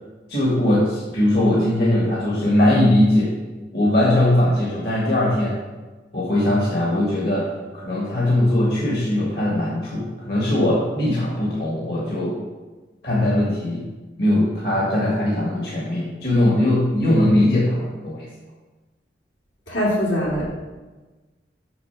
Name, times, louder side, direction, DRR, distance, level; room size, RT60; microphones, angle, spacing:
voice 1, 0.3-3.3 3.7-5.6 6.1-7.5 7.7-12.3 13.0-13.8 14.2-18.3, left 1 dB, 55° left, -4 dB, 1.8 m, -20 dB
voice 2, 19.7-20.4, equal, 85° left, -5 dB, 2.8 m, -22 dB
6.8 x 6.7 x 5.7 m, 1.2 s
head